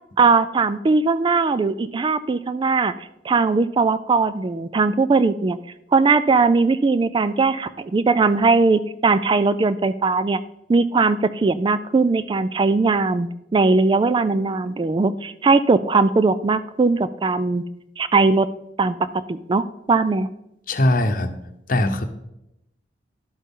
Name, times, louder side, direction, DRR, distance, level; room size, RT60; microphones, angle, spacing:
voice 1, 0.2-2.9 3.2-5.6 5.9-10.4 10.7-17.6 18.0-18.5 18.8-19.0 19.3-20.3, right 4 dB, 25° right, 14 dB, 0.3 m, -19 dB
voice 2, 20.7-21.3 21.7-22.0, left 1 dB, 50° left, 8 dB, 0.9 m, -20 dB
11.0 x 8.1 x 3.7 m, 0.85 s
head